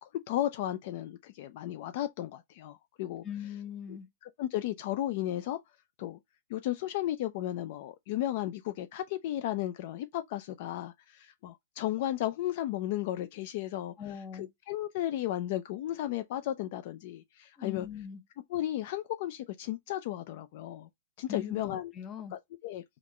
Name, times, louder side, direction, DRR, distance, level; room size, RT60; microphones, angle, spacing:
voice 1, 0.0-3.2 4.4-5.6 6.0-6.2 6.5-13.9 14.3-17.9 18.5-20.9 21.2-21.9 22.3-22.8, left 13 dB, 55° left, 0.3 m, -34 dB
voice 2, 3.2-4.1 14.0-14.5 17.6-18.2 21.3-22.4, left 9 dB, 25° left, 0.8 m, -40 dB
3.4 x 2.4 x 3.1 m
hypercardioid pair, 135°, 0 cm